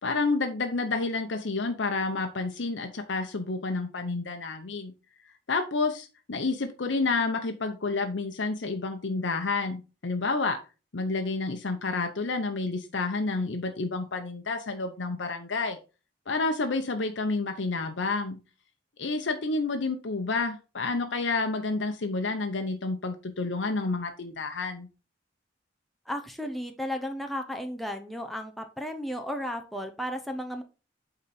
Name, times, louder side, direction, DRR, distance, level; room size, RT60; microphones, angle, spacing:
voice 1, 0.0-4.9 5.5-10.6 10.9-15.8 16.3-18.4 19.0-24.9, left 3 dB, 75° left, 5 dB, 0.8 m, -29 dB
voice 2, 26.1-30.6, equal, ahead, 4 dB, 0.7 m, -34 dB
8.5 x 4.0 x 4.2 m, 0.32 s
head